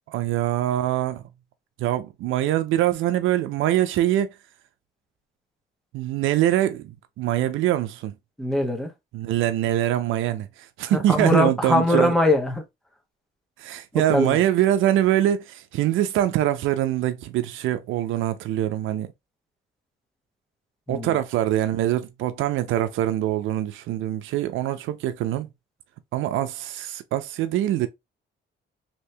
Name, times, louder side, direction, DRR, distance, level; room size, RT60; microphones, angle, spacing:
voice 1, 0.1-1.2 1.8-4.3 5.9-8.1 9.1-12.1 13.6-19.1 20.9-25.5 26.1-27.9, right 13 dB, 85° right, 0.5 m, -24 dB
voice 2, 8.4-8.9 11.1-12.6 13.9-14.4 20.9-21.1, left 2 dB, ahead, 1.0 m, -22 dB
2.8 x 2.7 x 3.2 m
cardioid pair, 90°, 20 cm